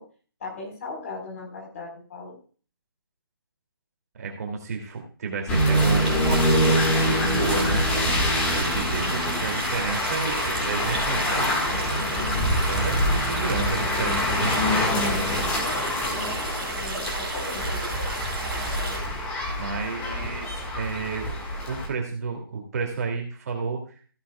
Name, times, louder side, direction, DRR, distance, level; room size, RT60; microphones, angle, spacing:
voice 1, 0.4-2.4 16.1-16.5 16.8-17.8, left 3 dB, 35° left, 0 dB, 4.4 m, -38 dB
voice 2, 4.1-7.9 8.5-11.6 12.7-14.5 19.6-21.3 21.7-24.0, right 4 dB, 45° right, 2 dB, 2.6 m, -31 dB
sound 1, 5.5-21.9, left 1 dB, 10° left, 1.7 m, -25 dB
sound 2, 5.7-19.0, right 2 dB, 5° right, 4.3 m, -33 dB
15.5 x 9.9 x 2.3 m, 0.40 s
hypercardioid pair, 165°, 12 cm